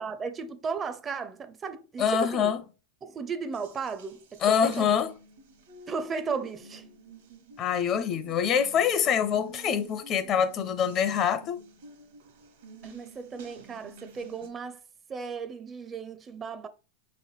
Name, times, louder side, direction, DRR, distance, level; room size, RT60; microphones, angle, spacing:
voice 1, 0.0-2.5 3.0-5.0 5.9-6.8 12.8-14.8 15.1-16.7, right 5 dB, 25° right, 0.5 m, -35 dB
voice 2, 2.0-2.6 4.4-5.1 7.6-11.6, left 8 dB, 40° left, 0.6 m, -25 dB
Water tap faucet, 3.5-14.5, right 2 dB, 75° right, 1.1 m, -51 dB
5.3 x 3.1 x 3.1 m
hypercardioid pair, 100°, 0 cm